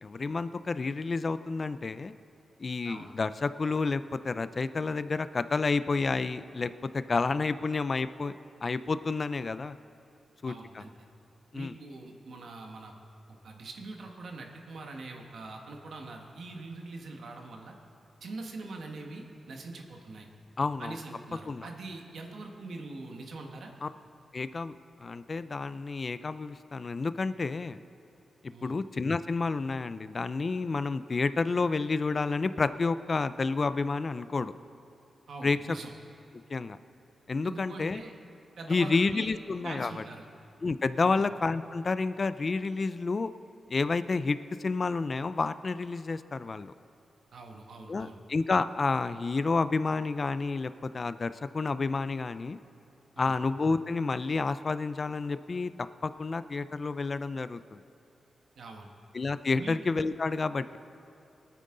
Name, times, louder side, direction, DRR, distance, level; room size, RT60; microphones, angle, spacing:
voice 1, 0.0-2.1 2.6-8.3 8.6-9.8 10.4-10.8 11.5-11.7 20.6-21.0 21.5-21.7 23.8-23.9 24.3-24.7 25.0-27.8 28.4-34.5 35.4-35.8 36.5-36.8 37.3-38.0 38.7-40.0 40.6-43.3 43.7-46.7 47.9-52.6 53.2-55.7 56.0-57.8 59.1-60.8, left 4 dB, 35° left, 13 dB, 0.3 m, -30 dB
voice 2, 2.8-3.1 7.2-7.3 10.4-10.9 11.5-12.9 13.4-17.7 18.2-20.3 20.8-23.7 28.5-28.8 35.3-35.9 37.4-38.1 38.6-40.3 41.0-41.2 47.3-48.2 53.1-53.4 58.5-58.9 59.5-59.8, right 3 dB, 65° right, 2 dB, 1.4 m, -43 dB
23.0 x 9.2 x 3.8 m, 2.9 s
wide cardioid pair, 160°, 0 cm